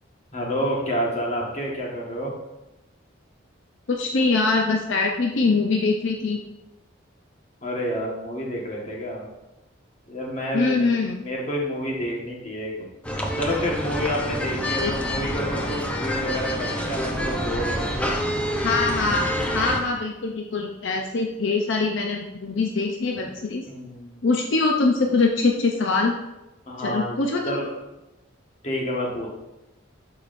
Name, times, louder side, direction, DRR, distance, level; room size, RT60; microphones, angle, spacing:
voice 1, 0.3-2.3 7.6-9.3 10.1-10.9 11.2-12.9 13.4-18.1 23.2-23.3 23.7-24.1 26.7-27.2 27.4-27.7 28.6-29.3, equal, 35° left, -2 dB, 1.4 m, -29 dB
voice 2, 3.9-6.4 10.5-11.2 14.8-15.0 18.5-23.6 24.2-26.1 26.8-27.6, left 3 dB, 65° left, 2 dB, 0.6 m, -23 dB
sound 1, 13.0-19.8, equal, 5° left, 0.6 m, -27 dB
11.5 x 4.8 x 2.6 m, 0.98 s
head